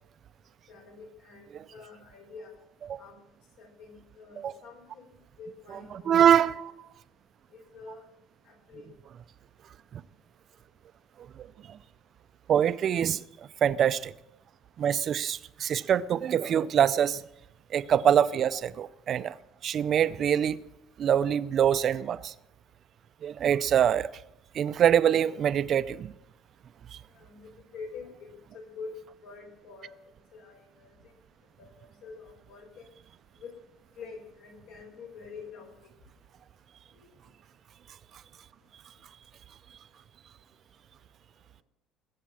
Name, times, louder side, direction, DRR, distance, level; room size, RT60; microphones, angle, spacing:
voice 1, 0.7-2.5 3.0-3.2 3.6-5.1 5.4-6.6 7.5-8.0 8.5-8.9 27.1-29.0 29.2-29.9 30.3-31.0 31.6-32.9 33.4-33.5 34.0-35.7, left 4 dB, 70° left, 5.2 m, -46 dB
voice 2, 6.1-6.7 9.9-10.0 11.4-11.8 12.5-13.2 13.6-14.1 14.8-17.2 17.7-19.4 19.6-20.6 21.0-22.3 23.2-24.1 24.5-26.1, right 9 dB, 40° right, 0.4 m, -24 dB
20.0 x 8.5 x 7.4 m
cardioid pair, 145°, 0 cm